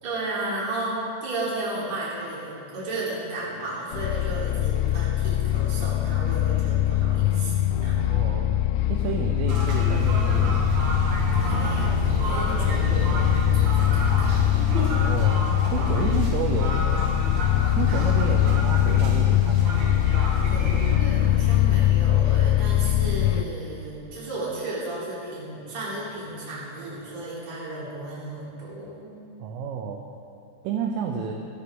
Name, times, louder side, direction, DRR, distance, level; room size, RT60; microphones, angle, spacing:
voice 1, 0.0-8.2 11.4-13.3 13.5-14.6 20.5-29.1, right 2 dB, 35° right, -8 dB, 4.3 m, -34 dB
sound 1, 3.9-23.4, left 13 dB, 85° left, 3.2 m, -22 dB
voice 2, 8.0-8.5 8.9-10.8 14.8-15.4 15.7-17.4 17.7-19.7 29.4-30.0 30.6-31.3, right 7 dB, 80° right, 2 dB, 3.1 m, -31 dB
sound 2, 9.5-21.0, right 2 dB, 55° right, 1.9 m, -29 dB
18.0 x 13.5 x 3.8 m, 2.5 s
omnidirectional pair, 6.0 m